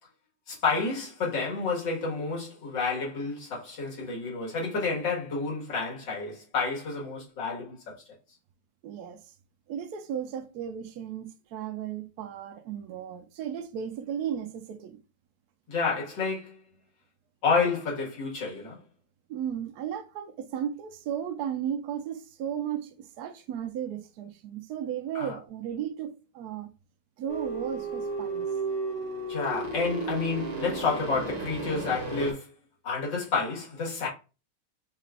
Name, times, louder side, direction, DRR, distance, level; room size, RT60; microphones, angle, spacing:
voice 1, 0.5-8.0 15.7-16.6 17.4-18.8 25.1-25.4 29.3-32.5 32.8-34.1, left 4 dB, 80° left, 2.4 m, -30 dB
voice 2, 8.8-9.2 9.7-15.0 19.3-26.7 27.2-28.5, right 9 dB, 70° right, 1.1 m, -35 dB
sound 1, 27.3-32.3, right 3 dB, 35° right, 0.6 m, -33 dB
4.8 x 2.4 x 3.3 m
omnidirectional pair, 2.0 m